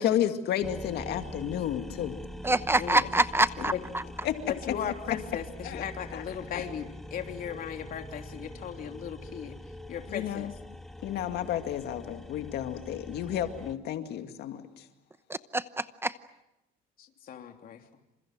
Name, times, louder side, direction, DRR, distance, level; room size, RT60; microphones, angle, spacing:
voice 1, 0.0-2.2 4.2-4.4 5.6-5.8 6.1-6.2 6.5-6.6 10.1-10.5 11.0-14.8, left 11 dB, 75° left, 7 dB, 2.2 m, -31 dB
sound 1, 0.6-13.8, equal, ahead, 1.6 m, -44 dB
voice 2, 2.4-4.0 15.3-16.1, right 2 dB, 15° right, 13 dB, 0.8 m, -26 dB
voice 3, 4.5-9.5 9.9-10.5 17.0-17.8, left 9 dB, 60° left, 4 dB, 3.3 m, -37 dB
28.5 x 27.5 x 6.2 m, 0.90 s
cardioid pair, 110°, 17 cm